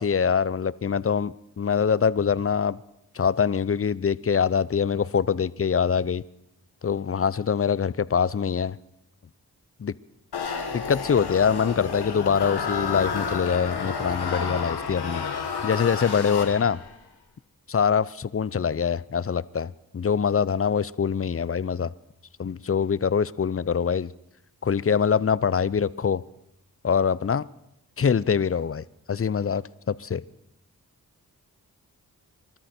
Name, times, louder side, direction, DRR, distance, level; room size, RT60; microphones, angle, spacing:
voice 1, 0.0-2.8 3.2-6.2 6.8-8.8 9.8-9.9 10.7-15.2 15.6-16.8 17.7-21.9 22.4-24.1 24.6-26.2 26.8-27.4 28.0-30.2, left 6 dB, 35° left, 0.6 m, -24 dB
sound 1, 10.3-16.9, left 5 dB, 85° left, 2.0 m, -30 dB
24.5 x 13.0 x 4.4 m
cardioid pair, 40°, 38 cm